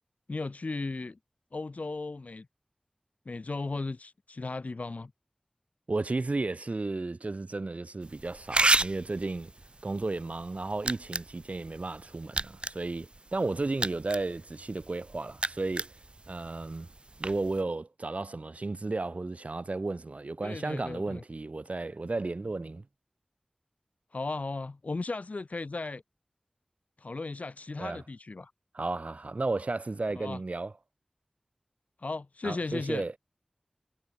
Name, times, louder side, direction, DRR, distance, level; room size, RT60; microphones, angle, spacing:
voice 1, 0.3-1.2 1.5-2.5 3.2-5.1 20.4-21.2 24.1-26.0 27.0-28.5 30.1-30.4 32.0-33.0, left 3 dB, 70° left, 1.4 m, -36 dB
voice 2, 5.9-9.5 9.8-15.9 16.3-16.9 17.2-22.9 27.8-28.0 28.7-30.7 32.4-33.1, right 3 dB, 65° right, 3.8 m, -33 dB
sound 1, 8.0-17.6, right 2 dB, 45° right, 0.9 m, -34 dB
wide cardioid pair, 65°, 3 cm